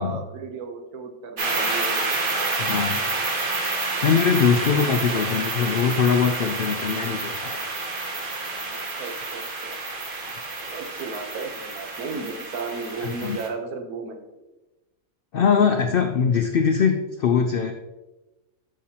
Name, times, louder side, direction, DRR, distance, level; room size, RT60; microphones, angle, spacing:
voice 1, 0.0-2.1 2.3-2.5 4.7-5.3 8.7-9.8 10.6-14.3, right 4 dB, 85° right, 6 dB, 1.4 m, -35 dB
sound 1, 1.4-13.5, right 3 dB, 40° right, 1.1 m, -29 dB
voice 2, 2.6-3.1 4.0-7.6 13.2-13.4 15.3-17.7, left 6 dB, 90° left, 6 dB, 0.5 m, -22 dB
8.4 x 5.7 x 2.8 m, 1.1 s
omnidirectional pair, 1.5 m